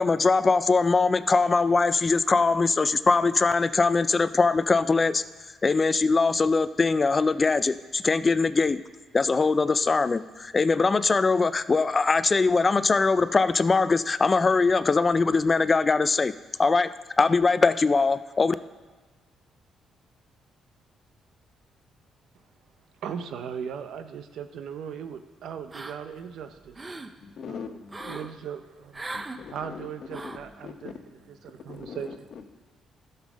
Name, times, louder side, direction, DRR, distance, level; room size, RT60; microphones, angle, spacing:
voice 1, 0.0-5.2 5.6-8.8 9.1-16.3 16.6-18.6, left 4 dB, 30° left, 14 dB, 0.4 m, -22 dB
voice 2, 23.0-26.9 27.5-29.0 29.5-32.3, right 7 dB, 75° right, 9 dB, 0.7 m, -38 dB
sound 1, 25.7-26.2 26.6-27.1 27.9-28.3 28.9-29.4 30.1-30.5, right 2 dB, 25° right, 0.7 m, -38 dB
voice 3, 27.2-28.2 29.1-29.9 30.2-30.4 30.6-31.0 31.7-32.5, left 6 dB, 60° left, 8 dB, 0.9 m, -41 dB
12.0 x 5.6 x 6.2 m, 1.4 s
cardioid pair, 90°, 0 cm